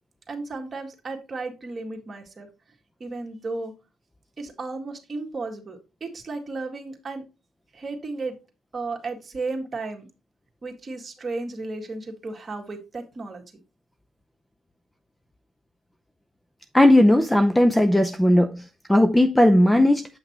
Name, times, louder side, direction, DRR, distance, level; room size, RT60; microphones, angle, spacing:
voice 1, 0.3-2.5 3.0-3.7 4.4-7.2 7.7-8.4 8.7-10.1 10.6-13.4, right 3 dB, 30° right, 1.9 m, -34 dB
voice 2, 16.7-18.6 18.9-20.1, left 1 dB, 5° left, 0.6 m, -17 dB
8.3 x 5.7 x 3.0 m
cardioid pair, 100°, 0 cm